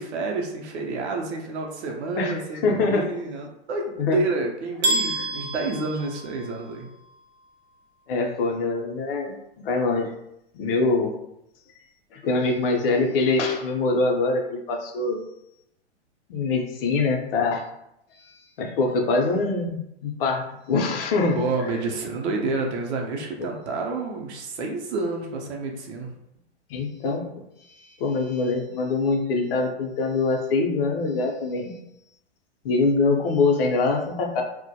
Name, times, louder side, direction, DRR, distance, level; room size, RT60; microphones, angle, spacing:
voice 1, 0.0-6.9 21.4-26.1, right 3 dB, 70° right, 1 dB, 0.6 m, -29 dB
voice 2, 2.2-3.1 4.0-4.2 5.1-5.3 8.1-10.1 10.5-11.1 12.1-15.2 16.3-17.7 18.1-21.4 23.4-23.5 26.7-31.8 32.6-34.4, left 3 dB, 55° left, 2 dB, 0.6 m, -24 dB
sound 1, 4.8-6.8, right 2 dB, 30° right, 0.5 m, -28 dB
2.1 x 2.1 x 2.7 m, 0.81 s
hypercardioid pair, 120°, 34 cm